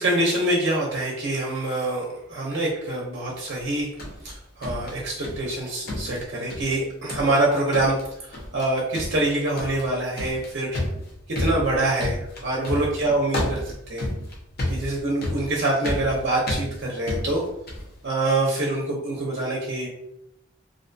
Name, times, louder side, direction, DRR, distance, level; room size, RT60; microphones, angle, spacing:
voice 1, 0.0-3.9 4.2-8.0 8.2-10.8 11.3-13.6 13.9-14.1 14.7-17.4 18.0-19.9, right 2 dB, 60° right, -3 dB, 0.6 m, -25 dB
sound 1, 3.6-5.6 5.9-6.8 7.1-7.4 7.7-8.1 8.3-8.7 8.9-17.9, left 1 dB, 50° left, 0.6 m, -31 dB
2.5 x 2.3 x 2.5 m, 0.80 s
head